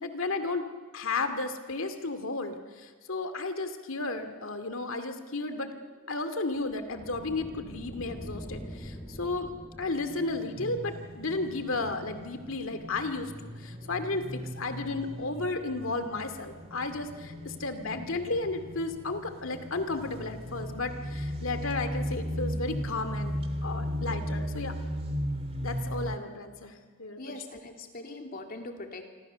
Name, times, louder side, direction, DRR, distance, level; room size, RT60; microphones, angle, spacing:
voice 1, 0.0-0.6 0.9-5.7 6.1-9.5 9.8-24.7 25.6-27.4, left 3 dB, 65° left, 8 dB, 2.4 m, -33 dB
sound 1, 5.7-10.7, equal, 15° left, 4.6 m, -46 dB
sound 2, 7.2-24.2, equal, 80° right, 7.4 m, -49 dB
sound 3, 10.6-11.5 13.0-17.6 17.9-18.4 19.9-26.2, equal, 30° right, 1.8 m, -35 dB
voice 2, 27.2-29.1, left 2 dB, 45° left, 3 dB, 2.9 m, -41 dB
27.0 x 26.0 x 6.9 m, 1.4 s
head